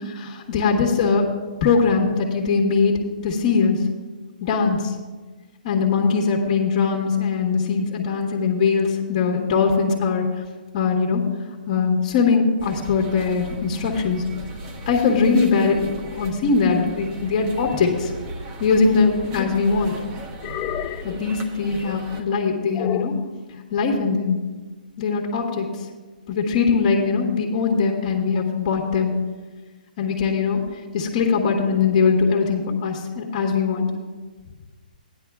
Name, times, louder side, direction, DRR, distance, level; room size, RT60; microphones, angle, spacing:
voice 1, 0.1-1.3 1.6-3.8 4.4-4.8 5.6-10.3 10.7-11.2 11.7-14.2 14.9-18.1 18.6-20.0 21.0-23.1 23.7-24.4 25.0-25.7 26.3-29.2 30.0-30.6 30.9-33.9, left 5 dB, 40° left, 1 dB, 1.4 m, -21 dB
sound 1, 12.6-22.2, right 1 dB, 30° right, 1.1 m, -37 dB
sound 2, 19.3-19.7 20.4-21.2 22.7-23.3, left 12 dB, 25° left, 0.3 m, -31 dB
15.5 x 10.0 x 2.4 m, 1.3 s
hypercardioid pair, 150°, 5 cm